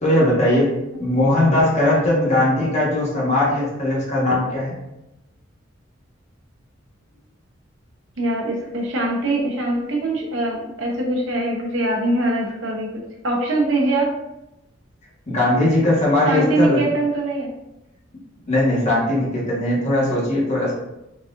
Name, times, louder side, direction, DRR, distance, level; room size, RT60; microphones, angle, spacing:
voice 1, 0.0-0.7 1.0-4.8 15.3-16.8 18.4-20.7, left 1 dB, 35° left, -6 dB, 1.2 m, -19 dB
voice 2, 8.2-12.9 13.2-14.1 16.2-17.5, right 2 dB, 85° right, -1 dB, 0.8 m, -22 dB
4.0 x 2.5 x 2.5 m, 0.90 s
head